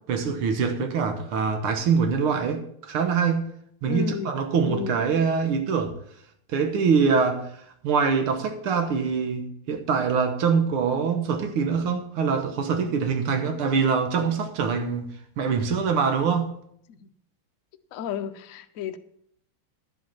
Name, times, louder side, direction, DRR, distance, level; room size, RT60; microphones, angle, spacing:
voice 1, 0.1-3.5 3.8-5.9 6.5-7.5 7.8-15.1 15.4-16.5, right 5 dB, 80° right, 2.0 m, -24 dB
voice 2, 3.9-4.3 4.6-5.0 16.9-17.1 17.9-19.0, left 8 dB, 85° left, 0.7 m, -32 dB
11.0 x 7.9 x 5.7 m
omnidirectional pair, 2.3 m